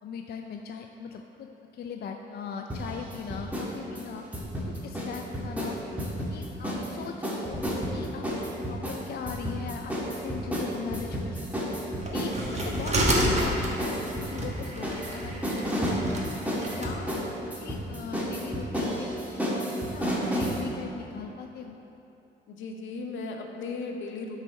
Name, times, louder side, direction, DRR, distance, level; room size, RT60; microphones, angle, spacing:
voice 1, 0.0-4.2 4.7-5.8 6.3-7.6 7.9-11.8 12.1-13.9 14.2-16.2 16.7-17.1 17.6-19.1 19.5-21.8, left 6 dB, 55° left, 3 dB, 0.4 m, -40 dB
sound 1, 2.7-3.7 4.0-6.9 7.2-20.6, equal, 5° right, 1.5 m, -31 dB
sound 2, 12.0-16.9, equal, 35° right, 1.3 m, -30 dB
voice 2, 22.5-24.4, left 3 dB, 75° left, 3 dB, 0.8 m, -36 dB
8.1 x 4.1 x 5.6 m, 2.9 s
cardioid pair, 90°, 20 cm